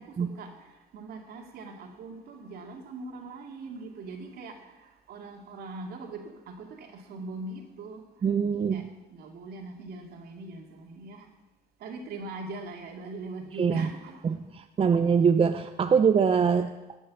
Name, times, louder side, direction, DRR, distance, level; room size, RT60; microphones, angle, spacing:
voice 1, 0.0-8.0 8.5-11.3 11.8-14.3 14.8-14.9, right 3 dB, 65° right, 3 dB, 2.4 m, -42 dB
voice 2, 8.2-8.9 13.6-13.9 14.2-14.4 14.8-17.0, right 6 dB, 35° right, 8 dB, 0.6 m, -23 dB
18.0 x 6.2 x 7.5 m, 1.1 s
cardioid pair, 110°, 17 cm